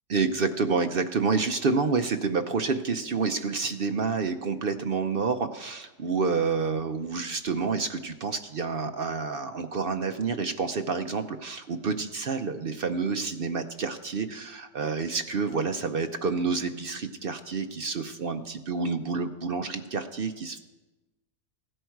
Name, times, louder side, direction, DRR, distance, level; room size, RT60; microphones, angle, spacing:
voice 1, 0.1-20.6, right 4 dB, 55° right, 8 dB, 0.6 m, -28 dB
16.0 x 11.0 x 4.6 m, 1.1 s
omnidirectional pair, 1.7 m